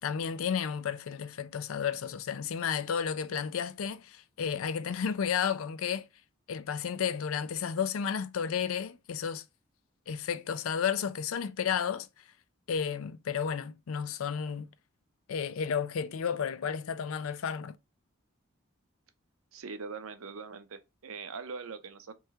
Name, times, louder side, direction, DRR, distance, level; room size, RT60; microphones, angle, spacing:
voice 1, 0.0-6.1 6.5-9.4 10.1-12.1 12.7-14.7 15.3-17.7, left 7 dB, 85° left, 0.4 m, -32 dB
voice 2, 19.5-22.1, right 5 dB, 90° right, 0.6 m, -42 dB
3.3 x 3.1 x 3.4 m
head